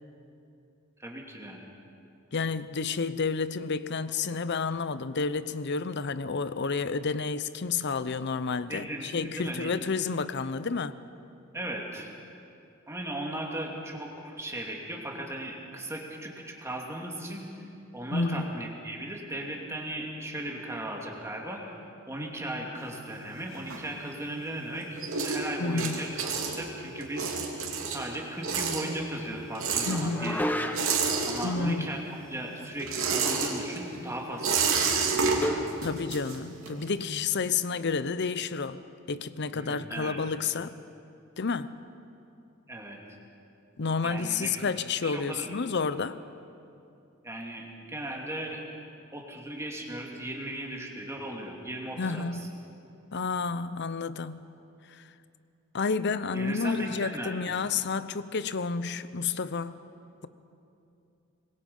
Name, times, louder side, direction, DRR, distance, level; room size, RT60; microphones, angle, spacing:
voice 1, 1.0-1.6 8.7-9.7 11.5-12.1 12.9-17.5 17.9-21.6 22.1-27.3 27.9-30.7 31.2-35.4 39.5-40.2 42.7-43.0 44.0-44.7 45.0-45.6 47.2-48.6 49.1-52.3 56.3-57.4, right 1 dB, 15° right, 2.5 m, -37 dB
voice 2, 2.3-11.0 18.1-18.5 25.6-26.1 29.9-30.5 31.4-31.9 35.8-38.8 39.1-40.8 41.4-41.7 43.8-46.2 52.0-52.7 53.1-54.4 54.9-55.0 55.7-59.7, left 4 dB, 55° left, 0.7 m, -30 dB
sound 1, 22.8-24.4 24.7-31.9 32.2-36.9, right 5 dB, 80° right, 3.0 m, -30 dB
sound 2, 30.1-31.1 33.2-33.6 33.9-34.0 35.4-35.8, left 1 dB, 10° left, 0.9 m, -32 dB
25.5 x 21.5 x 5.5 m
head